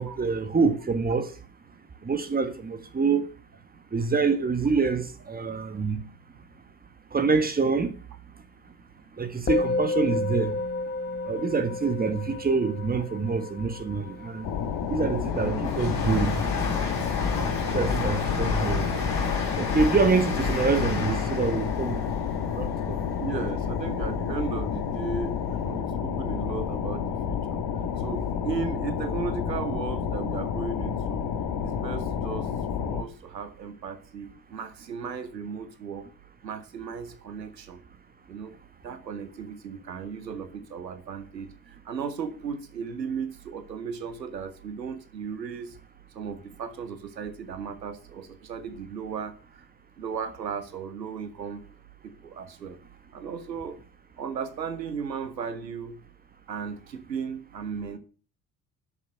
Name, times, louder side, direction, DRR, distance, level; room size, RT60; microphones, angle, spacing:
voice 1, 0.0-1.3 2.0-3.3 3.9-6.0 7.1-7.9 9.2-10.6 11.2-14.5 14.9-16.4 17.7-18.9 19.6-22.1 22.5-23.0, right 4 dB, 20° right, 1.5 m, -26 dB
Musical instrument, 9.5-19.0, left 2 dB, 20° left, 0.8 m, -33 dB
Train, 14.2-24.4 24.8-25.7 26.0-26.1, left 4 dB, 70° left, 4.6 m, -31 dB
sound 1, 14.4-33.0, left 7 dB, 50° left, 1.4 m, -30 dB
voice 2, 23.2-27.6 28.0-31.3 31.6-32.5 32.8-36.1 36.4-37.8 38.3-38.6 38.8-41.5 41.8-45.8 46.1-49.7 50.0-51.6 52.2-52.8 53.1-53.8 54.2-56.0 56.5-58.0, right 6 dB, 85° right, 0.8 m, -35 dB
8.1 x 6.7 x 6.5 m
figure-of-eight pair, 50°, 49 cm